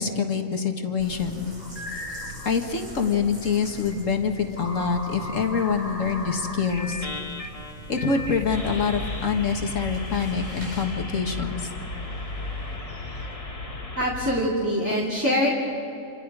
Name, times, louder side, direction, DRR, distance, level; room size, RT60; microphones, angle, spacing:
voice 1, 0.0-1.6 2.5-7.1 7.9-11.7, left 6 dB, 55° left, 4 dB, 1.9 m, -25 dB
sound 1, 1.0-10.8, right 1 dB, 80° right, 8.2 m, -42 dB
sound 2, 1.6-2.5 3.4-14.0, left 1 dB, 25° left, 1.5 m, -38 dB
sound 3, 8.2-14.4, left 2 dB, 85° left, 3.6 m, -36 dB
voice 2, 14.0-15.5, equal, 10° right, -5 dB, 2.6 m, -24 dB
28.0 x 27.5 x 4.9 m, 2.9 s
omnidirectional pair, 1.7 m